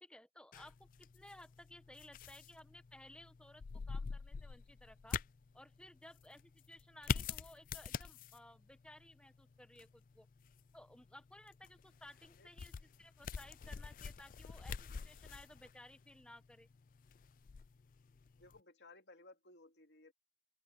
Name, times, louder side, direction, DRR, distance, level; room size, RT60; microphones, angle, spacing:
voice 1, 0.0-5.2 5.5-10.3 10.7-16.7, left 1 dB, 5° left, 1.3 m, -58 dB
sound 1, 0.5-18.6, left 6 dB, 50° left, 0.4 m, -46 dB
voice 2, 18.3-20.1, left 2 dB, 85° left, 2.4 m, -60 dB
open air
head